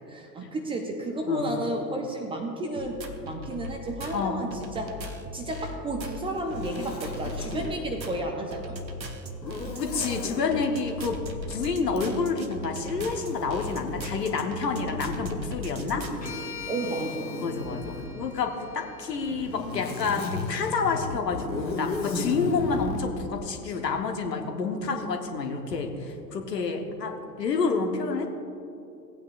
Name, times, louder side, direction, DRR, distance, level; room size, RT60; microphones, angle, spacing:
voice 1, 0.1-5.0 5.3-8.8 16.7-17.4, right 2 dB, 10° right, 3 dB, 0.6 m, -32 dB
sound 1, 2.8-16.3, left 1 dB, 90° right, 1.0 m, -38 dB
Zipper (clothing), 6.3-7.8 9.4-10.5 11.9-15.1 15.9-18.2 19.1-23.1, left 3 dB, 90° left, 1.2 m, -36 dB
voice 2, 9.8-11.2 11.5-16.0 17.4-28.3, left 4 dB, 70° left, 4 dB, 1.3 m, -29 dB
sound 2, 16.2-20.4, left 6 dB, 15° left, 2.0 m, -43 dB
17.0 x 8.8 x 2.5 m, 2.8 s
figure-of-eight pair, 90°, 50 cm